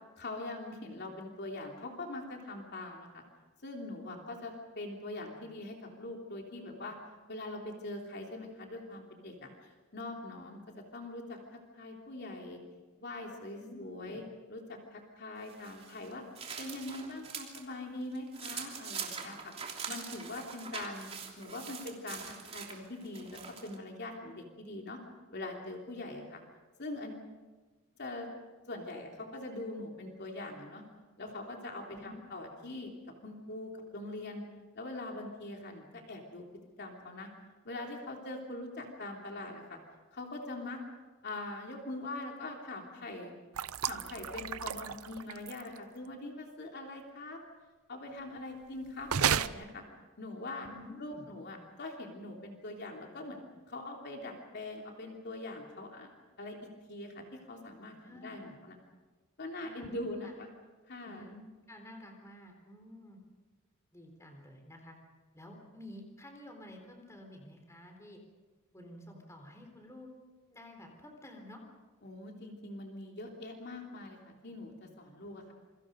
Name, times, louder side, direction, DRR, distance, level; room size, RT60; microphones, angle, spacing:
voice 1, 0.2-3.2 3.6-6.9 7.3-9.5 9.9-10.6 10.9-12.6 13.0-14.2 14.5-16.2 16.6-19.5 19.9-21.1 21.4-25.0 25.3-26.4 26.8-27.3 28.0-28.3 28.7-30.8 31.2-32.9 33.2-34.4 34.7-36.4 36.8-37.3 37.6-39.8 40.1-40.8 41.2-43.3 43.8-47.4 47.9-49.8 50.2-50.7 51.0-53.4 53.7-56.1 56.4-56.6 56.9-58.8 59.4-60.5 60.9-61.2 72.0-74.2 74.4-75.5, left 2 dB, 50° left, 1 dB, 3.2 m, -42 dB
voice 2, 13.6-14.2 31.9-32.2 50.6-51.3 58.0-58.6 59.6-60.3 61.0-63.2 63.9-65.0 65.3-68.2 68.7-70.1 70.5-71.6, left 1 dB, 15° left, 3 dB, 3.9 m, -51 dB
sound 1, 15.5-17.6 18.0-23.8, right 6 dB, 30° right, 3.1 m, -43 dB
sound 2, 43.5-45.8 49.1-49.5, right 8 dB, 85° right, 0.7 m, -32 dB
28.0 x 24.5 x 5.2 m, 1.3 s
head